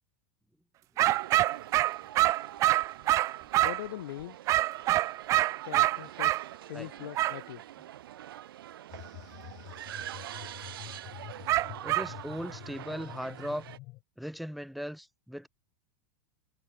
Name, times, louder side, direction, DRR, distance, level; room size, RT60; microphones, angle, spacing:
sound 1, 1.0-3.9 4.5-6.4 7.1-7.4 11.5-12.1, right 15 dB, 25° right, 1.1 m, -26 dB
sound 2, 1.1-13.8, right 13 dB, 85° right, 3.0 m, -45 dB
voice 1, 3.6-4.4 5.6-6.4 6.7-7.6, left 15 dB, 65° left, 3.0 m, -41 dB
sound 3, 8.9-14.0, left 21 dB, 35° left, 6.5 m, -47 dB
voice 2, 11.8-13.7 14.2-15.5, equal, ahead, 4.6 m, -38 dB
supercardioid pair, 165°, 12 cm